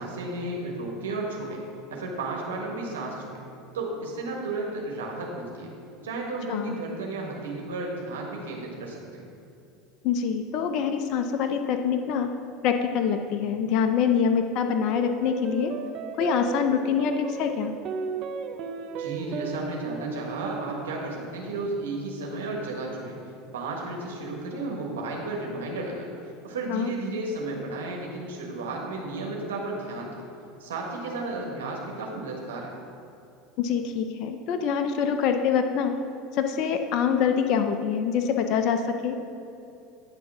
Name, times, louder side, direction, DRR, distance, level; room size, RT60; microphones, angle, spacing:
voice 1, 0.0-1.6 1.9-3.4 3.7-5.7 6.0-9.2 19.0-23.2 23.5-26.1 26.4-30.2 30.6-32.7, right 2 dB, 90° right, -1 dB, 1.3 m, -33 dB
voice 2, 10.0-12.3 12.6-15.7 16.2-17.7 26.7-26.9 33.6-35.9 36.3-39.1, left 7 dB, 55° left, 6 dB, 0.5 m, -25 dB
sound 1, 15.0-23.6, right 6 dB, 50° right, 0.6 m, -36 dB
9.6 x 3.7 x 6.0 m, 2.8 s
hypercardioid pair, 95°, 0 cm